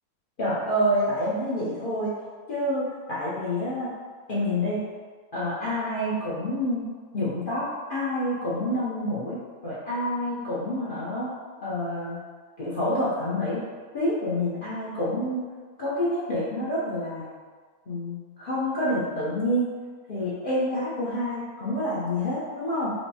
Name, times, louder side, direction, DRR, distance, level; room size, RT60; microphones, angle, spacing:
voice 1, 0.4-2.1 2.5-3.9 4.3-4.8 5.3-6.9 7.1-11.3 11.6-12.2 12.6-13.6 13.9-15.4 15.8-17.3 17.9-19.7 20.1-22.9, left 1 dB, 45° left, -10 dB, 0.7 m, -28 dB
4.5 x 2.1 x 2.8 m, 1.5 s
omnidirectional pair, 1.6 m